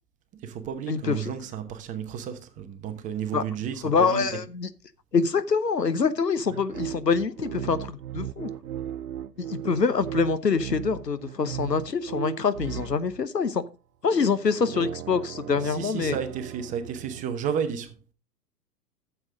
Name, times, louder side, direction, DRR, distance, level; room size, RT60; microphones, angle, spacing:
voice 1, 0.3-4.4 15.6-18.0, right 8 dB, 15° right, 0.8 m, -32 dB
voice 2, 0.9-1.3 3.3-3.4 3.8-4.7 5.1-8.5 9.5-13.6 14.0-16.2, left 5 dB, 85° left, 0.9 m, -25 dB
sound 1, 6.5-13.3 14.4-17.2, right 11 dB, 70° right, 0.5 m, -37 dB
12.0 x 7.1 x 3.7 m
figure-of-eight pair, 110°, 48 cm